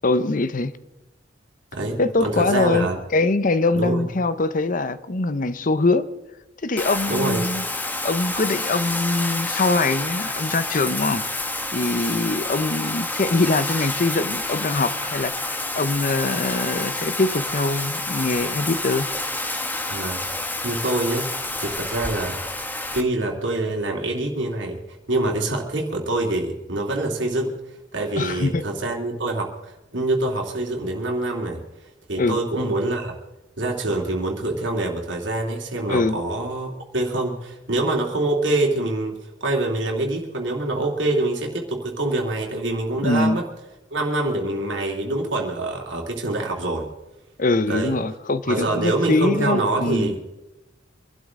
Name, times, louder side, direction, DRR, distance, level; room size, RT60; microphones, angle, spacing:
voice 1, 0.0-0.7 2.0-6.1 6.6-7.6 8.0-11.3 11.7-19.1 28.2-28.6 32.2-32.4 35.9-36.2 43.0-43.4 47.4-50.1, left 3 dB, 45° left, 0.8 m, -23 dB
voice 2, 1.7-3.0 3.7-4.1 7.1-7.4 19.9-21.3 21.6-22.4 22.9-24.8 25.1-27.5 27.9-31.6 32.1-33.2 33.6-39.2 39.4-43.4 43.9-46.9 47.7-48.0 48.4-50.2, right 2 dB, 75° right, 2.6 m, -25 dB
Bathtub (filling or washing), 6.8-23.0, left 2 dB, 10° left, 1.1 m, -28 dB
24.5 x 12.0 x 3.7 m
head